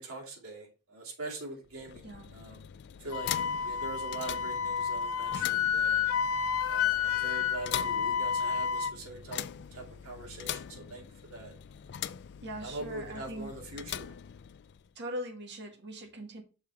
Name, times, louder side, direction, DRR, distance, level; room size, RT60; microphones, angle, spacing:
voice 1, 0.0-2.6 3.0-3.3 3.6-6.1 6.7-9.4 9.7-11.5 12.6-14.1, right 2 dB, 85° right, 2.6 m, -43 dB
sound 1, 1.6-14.9, left 10 dB, 55° left, 0.3 m, -42 dB
Wind instrument woodwind instrument, 3.1-8.9, left 7 dB, 80° left, 0.7 m, -30 dB
voice 2, 12.4-13.5 14.9-16.4, right 1 dB, 55° right, 1.3 m, -41 dB
6.4 x 3.5 x 5.6 m
head